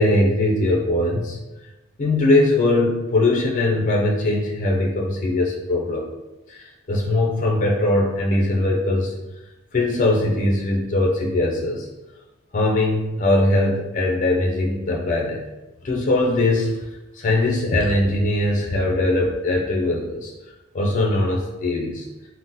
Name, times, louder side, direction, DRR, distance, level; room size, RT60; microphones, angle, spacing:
voice 1, 0.0-1.4 2.0-6.1 6.5-9.1 9.7-11.9 12.5-15.4 15.8-16.7 17.1-20.3 20.7-22.1, left 2 dB, 40° left, -1 dB, 0.4 m, -21 dB
3.6 x 2.1 x 2.7 m, 1.0 s
head